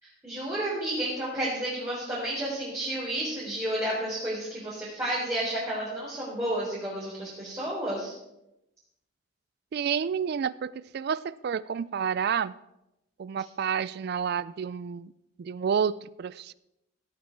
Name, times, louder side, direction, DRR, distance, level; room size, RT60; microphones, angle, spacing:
voice 1, 0.2-8.1, right 1 dB, 15° right, -8 dB, 3.8 m, -31 dB
voice 2, 9.7-12.5 13.2-15.1 15.4-16.5, right 7 dB, 50° right, 18 dB, 0.3 m, -29 dB
16.0 x 8.4 x 4.6 m, 0.89 s
head